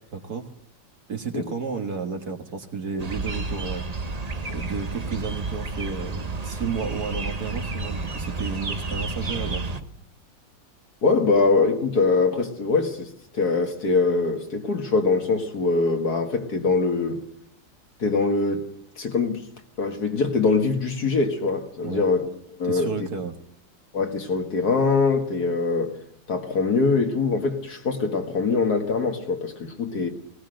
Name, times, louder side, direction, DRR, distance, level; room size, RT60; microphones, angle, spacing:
voice 1, 0.1-0.5 1.1-3.8 4.5-9.7 21.8-22.0 22.6-23.3, right 5 dB, 50° right, 2.1 m, -32 dB
sound 1, 3.0-9.8, right 3 dB, 25° right, 0.9 m, -31 dB
voice 2, 11.0-17.3 18.0-18.7 19.0-19.5 19.8-22.2 22.5-23.1 23.9-26.0 26.3-30.1, left 4 dB, 50° left, 2.2 m, -23 dB
19.0 x 18.5 x 7.8 m
omnidirectional pair, 2.1 m